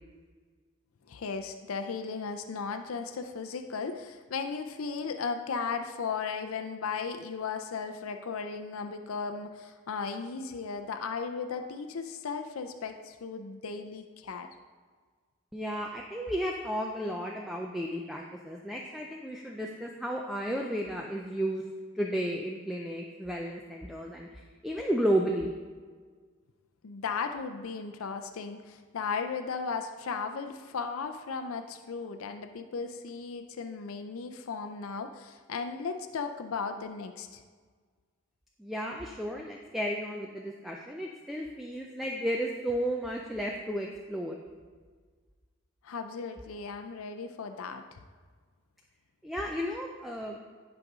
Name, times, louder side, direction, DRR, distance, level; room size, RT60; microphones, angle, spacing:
voice 1, 1.1-14.5 26.8-37.4 45.8-48.0, left 5 dB, 85° left, 7 dB, 0.5 m, -36 dB
voice 2, 15.5-21.6 21.9-25.5 38.6-44.4 49.2-50.4, equal, ahead, -1 dB, 0.4 m, -33 dB
10.5 x 5.1 x 3.6 m, 1.5 s
head